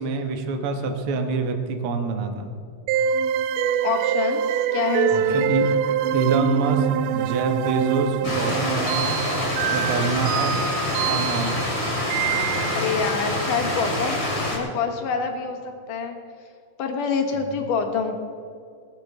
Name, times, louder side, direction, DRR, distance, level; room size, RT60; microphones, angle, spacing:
voice 1, 0.0-2.5 5.1-5.7 6.1-6.9 7.1-9.2 9.7-10.6 11.1-11.5, right 4 dB, 55° right, 5 dB, 1.7 m, -26 dB
sound 1, 2.9-13.0, right 8 dB, 80° right, 2.0 m, -25 dB
voice 2, 3.8-5.5 12.7-14.2 14.5-15.6 15.9-16.2 16.8-18.2, left 6 dB, 70° left, 4 dB, 2.9 m, -26 dB
Stream, 8.2-14.6, left 1 dB, 30° left, 3.8 m, -26 dB
19.5 x 7.1 x 6.8 m, 2.3 s
omnidirectional pair, 3.9 m